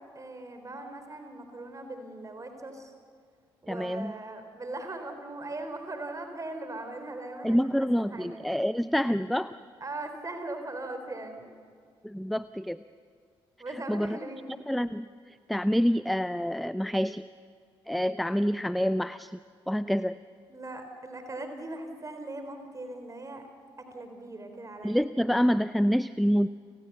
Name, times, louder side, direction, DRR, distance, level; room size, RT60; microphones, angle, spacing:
voice 1, 0.1-2.9 3.6-7.7 8.1-8.4 9.8-11.5 13.6-14.6 20.5-23.4 23.9-25.0, right 2 dB, 25° right, 6 dB, 4.0 m, -39 dB
voice 2, 3.7-4.1 7.4-9.5 12.0-12.8 13.7-14.2 14.6-17.3 17.9-19.4 19.7-20.2 24.8-26.5, equal, ahead, 16 dB, 0.5 m, -27 dB
30.0 x 18.5 x 6.9 m, 2.1 s
figure-of-eight pair, 40°, 12 cm